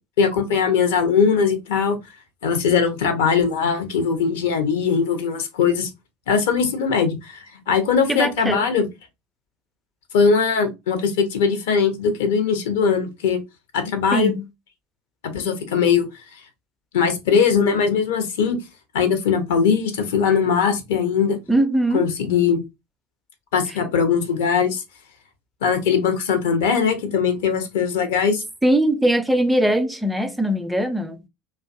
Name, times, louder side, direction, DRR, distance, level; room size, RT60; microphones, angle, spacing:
voice 1, 0.2-2.0 2.4-5.9 6.3-8.9 10.1-13.4 13.7-14.3 15.2-16.1 16.9-18.6 18.9-21.4 21.9-22.6 23.5-24.8 25.6-28.4, left 6 dB, 65° left, 0.6 m, -20 dB
voice 2, 8.1-8.7 14.1-14.5 21.5-22.1 28.6-31.2, right 1 dB, 5° right, 0.4 m, -20 dB
2.5 x 2.3 x 2.4 m
figure-of-eight pair, 70°, 0 cm